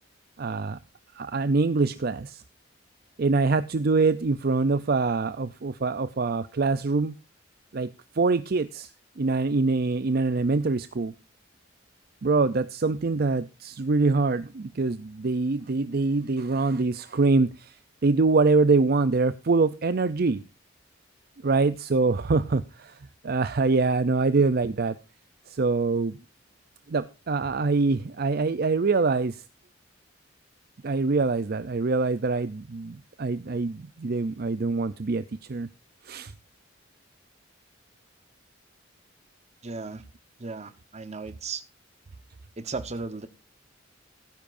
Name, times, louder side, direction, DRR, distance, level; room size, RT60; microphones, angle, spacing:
voice 1, 0.4-0.8 1.2-2.4 3.2-7.2 7.7-7.9 8.1-8.9 9.2-11.1 12.2-17.7 18.0-20.4 21.4-23.0 23.2-25.0 25.5-26.2 26.9-29.4 30.8-35.2 35.5-35.7 36.0-36.3, right 3 dB, 50° right, 0.5 m, -24 dB
voice 2, 39.6-40.0 40.4-41.6 42.6-43.3, right 4 dB, 35° right, 1.1 m, -35 dB
17.5 x 10.0 x 2.6 m
head